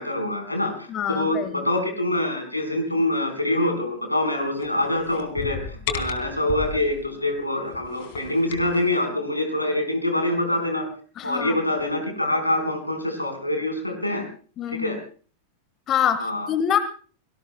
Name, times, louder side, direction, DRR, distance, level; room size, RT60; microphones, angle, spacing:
voice 1, 0.0-10.9 11.2-14.2 14.7-15.0 16.2-16.5, left 1 dB, 85° left, 5 dB, 4.4 m, -25 dB
voice 2, 0.9-1.7 11.2-11.6 14.6-14.9 15.9-16.8, left 9 dB, 30° left, 12 dB, 1.4 m, -25 dB
sound 1, 4.6-7.0 7.7-8.9, left 6 dB, 50° left, 2.9 m, -34 dB
25.5 x 18.5 x 2.2 m, 0.40 s
figure-of-eight pair, 90°, 0 cm